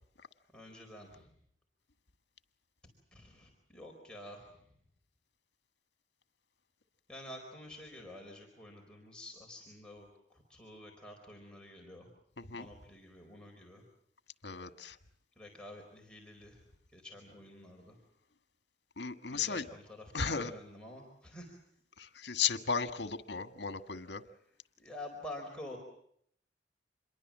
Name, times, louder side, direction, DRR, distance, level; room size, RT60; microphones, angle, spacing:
voice 1, 0.5-1.1 3.2-4.4 7.1-10.1 10.6-12.0 12.5-13.8 15.4-16.5 16.9-17.9 19.3-19.6 20.1-21.4 24.8-25.8, left 1 dB, 5° left, -1 dB, 4.5 m, -48 dB
voice 2, 12.4-12.7 14.4-15.0 19.0-19.7 20.1-20.5 22.0-24.2, left 6 dB, 70° left, 10 dB, 1.6 m, -35 dB
27.5 x 22.5 x 7.4 m, 0.68 s
head